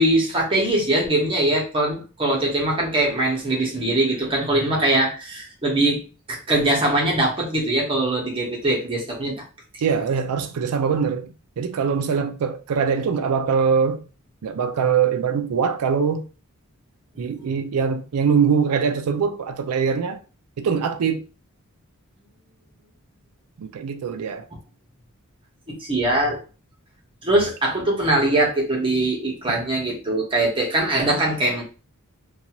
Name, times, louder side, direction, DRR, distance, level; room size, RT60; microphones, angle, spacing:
voice 1, 0.0-6.0 6.3-9.4 17.1-17.5 25.8-26.4 27.2-31.6, right 1 dB, 25° right, 1.0 m, -22 dB
voice 2, 9.8-11.3 11.6-14.0 14.4-16.2 17.2-20.2 20.6-21.2 23.6-24.5, right 6 dB, 80° right, 0.4 m, -22 dB
2.6 x 2.3 x 2.8 m
head